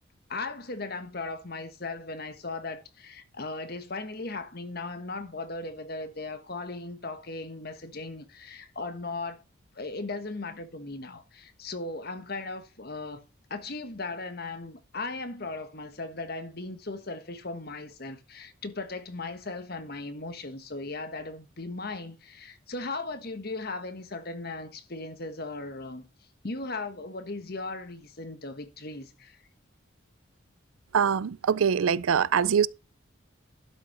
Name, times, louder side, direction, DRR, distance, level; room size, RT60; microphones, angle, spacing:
voice 1, 0.3-9.4 9.7-13.2 13.5-26.0 26.4-29.4, left 3 dB, 50° left, 1.3 m, -37 dB
voice 2, 30.9-32.7, right 7 dB, 90° right, 0.4 m, -23 dB
11.5 x 6.5 x 4.4 m
head